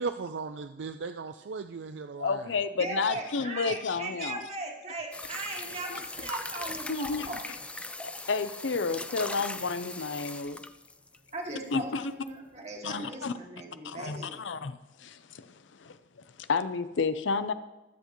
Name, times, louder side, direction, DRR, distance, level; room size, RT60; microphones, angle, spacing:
voice 1, 0.0-2.4, right 4 dB, 70° right, 9 dB, 0.4 m, -36 dB
voice 2, 2.2-4.4 6.9-7.3 8.0-10.6 11.7-12.1 12.8-13.3 13.8-17.5, left 4 dB, 85° left, 12 dB, 0.6 m, -31 dB
voice 3, 2.8-7.4 11.3-14.4, right 2 dB, 35° right, 0 dB, 2.0 m, -38 dB
sound 1, 5.1-11.3 12.3-12.4, left 2 dB, 5° left, 0.4 m, -40 dB
20.5 x 8.1 x 3.1 m, 1.1 s
head